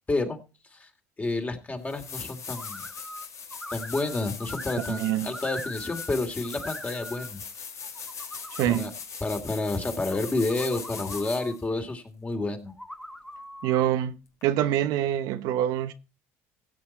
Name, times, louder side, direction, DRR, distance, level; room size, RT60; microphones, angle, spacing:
voice 1, 0.1-0.4 0.7-0.9 1.2-2.8 3.7-7.4 8.6-8.9 9.2-12.7, left 2 dB, 20° left, 2.7 m, -30 dB
sound 1, 1.4-1.5 1.9-11.6 14.4-14.5, left 6 dB, 45° left, 2.2 m, -40 dB
sound 2, 2.5-3.2 3.5-6.1 6.4-7.3 7.8-8.8 9.7-11.6 12.7-13.8, left 1 dB, 5° left, 1.3 m, -41 dB
voice 2, 4.9-5.4 8.5-8.9 13.6-14.2 14.4-15.9, right 12 dB, 70° right, 0.9 m, -25 dB
16.0 x 6.7 x 4.3 m
supercardioid pair, 75°, 7 cm